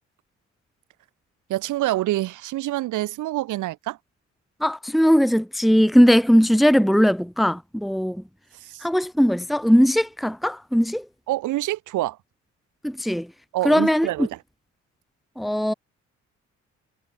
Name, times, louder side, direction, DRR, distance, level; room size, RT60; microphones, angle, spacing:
voice 1, 1.5-4.0 8.7-8.8 11.3-12.2 13.5-14.4, right 16 dB, 85° right, 1.4 m, -26 dB
voice 2, 4.6-8.2 8.8-11.0 12.8-13.3 13.6-14.3 15.4-15.7, equal, ahead, 1.3 m, -19 dB
cardioid pair, 90°, 30 cm